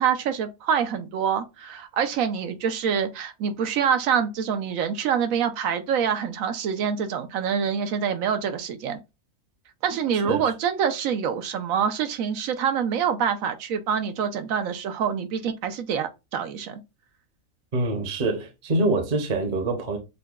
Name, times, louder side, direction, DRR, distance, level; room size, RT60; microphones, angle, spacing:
voice 1, 0.0-9.0 9.8-16.8, right 7 dB, 75° right, 1.0 m, -26 dB
voice 2, 17.7-20.0, right 2 dB, 40° right, 0.8 m, -25 dB
6.5 x 2.2 x 2.3 m
omnidirectional pair, 1.5 m